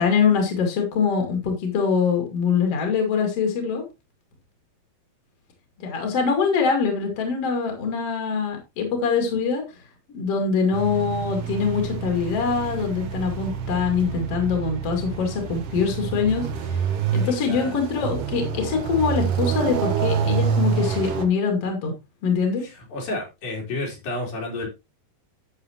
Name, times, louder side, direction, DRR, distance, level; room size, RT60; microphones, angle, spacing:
voice 1, 0.0-3.8 5.8-9.6 10.1-16.8 17.1-21.9 22.2-22.7, left 5 dB, 45° left, 3 dB, 3.1 m, -23 dB
sound 1, 10.7-21.2, right 7 dB, 60° right, 1.7 m, -27 dB
voice 2, 17.2-17.8 22.6-24.7, left 2 dB, 70° left, -1 dB, 5.6 m, -31 dB
11.5 x 7.9 x 3.0 m, 0.24 s
omnidirectional pair, 4.2 m